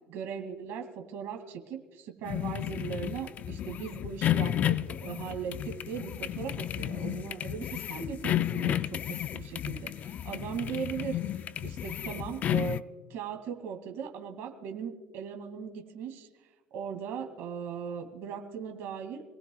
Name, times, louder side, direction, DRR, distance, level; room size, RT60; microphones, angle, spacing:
voice 1, 0.1-12.8 13.1-16.3 16.7-19.3, right 7 dB, 55° right, 4 dB, 2.3 m, -38 dB
sound 1, 2.3-12.8, left 11 dB, 30° left, 0.4 m, -32 dB
27.5 x 18.5 x 2.3 m, 1.3 s
cardioid pair, 160°, 5 cm